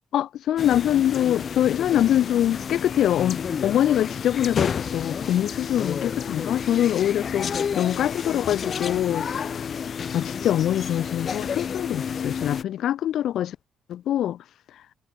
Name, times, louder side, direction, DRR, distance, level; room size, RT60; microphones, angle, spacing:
voice 1, 0.1-9.5 10.1-13.6 13.9-14.4, left 11 dB, 75° left, 0.4 m, -24 dB
sound 1, 0.6-12.6, left 7 dB, 50° left, 0.9 m, -30 dB
cardioid pair, 90°, 0 cm